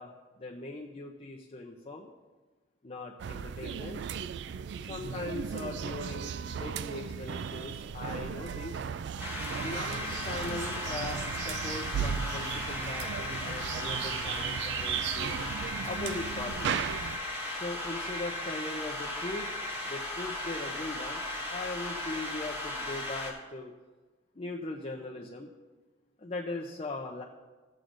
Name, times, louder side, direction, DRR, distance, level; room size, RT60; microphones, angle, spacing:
voice 1, 0.0-2.1 2.8-4.0 4.8-8.8 9.6-15.3 15.8-16.7 17.5-19.5 19.9-21.2 21.5-23.7 24.4-25.5 26.2-27.2, left 2 dB, 35° left, -1 dB, 0.6 m, -40 dB
sound 1, 3.2-17.2, right 7 dB, 65° right, 0.3 m, -36 dB
sound 2, 9.2-23.3, left 1 dB, 10° right, 1.6 m, -36 dB
15.5 x 7.5 x 2.6 m, 1.3 s
head